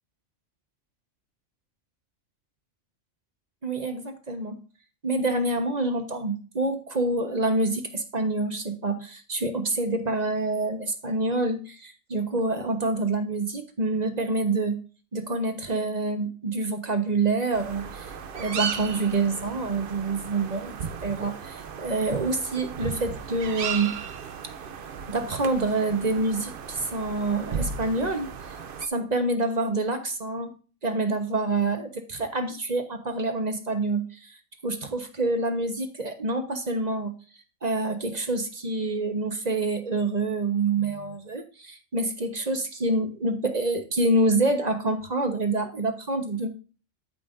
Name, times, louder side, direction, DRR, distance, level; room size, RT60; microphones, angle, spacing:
voice 1, 3.6-4.6 5.0-14.8 15.1-24.0 25.1-28.3 28.9-30.6 30.8-34.4 34.6-37.1 37.6-46.5, right 2 dB, 35° right, 6 dB, 1.2 m, -27 dB
sound 1, 17.5-28.9, right 6 dB, 55° right, 0.8 m, -35 dB
13.0 x 5.5 x 2.6 m, 0.36 s
omnidirectional pair, 1.3 m